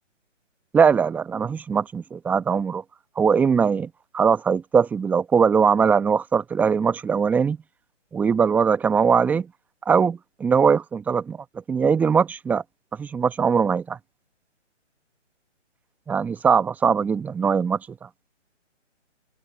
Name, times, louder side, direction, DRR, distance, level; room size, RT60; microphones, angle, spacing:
voice 1, 0.7-2.8 3.2-7.6 8.1-9.5 9.9-11.4 11.7-12.6 13.0-14.0 16.1-17.8, right 6 dB, 5° right, 1.0 m, -21 dB
figure-of-eight pair, 145°, 37 cm